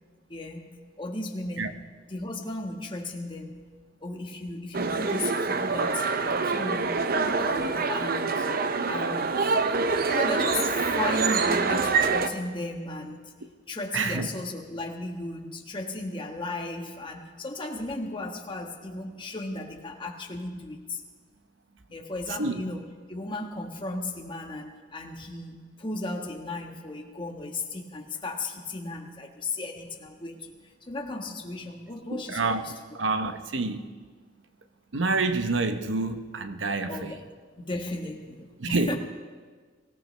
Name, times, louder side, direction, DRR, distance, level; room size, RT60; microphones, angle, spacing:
voice 1, 0.3-3.6 4.0-7.1 7.4-8.5 8.8-9.5 10.1-13.3 13.7-21.0 21.9-32.7 36.9-37.2 37.6-39.0, left 2 dB, 25° left, 1.5 m, -35 dB
sound 1, 4.7-12.3, right 4 dB, 50° right, 0.7 m, -25 dB
voice 2, 13.9-14.3 22.4-22.6 32.1-32.6 32.9-33.9 34.9-37.1 38.6-39.0, right 3 dB, 75° right, 0.9 m, -27 dB
24.0 x 16.5 x 3.4 m
head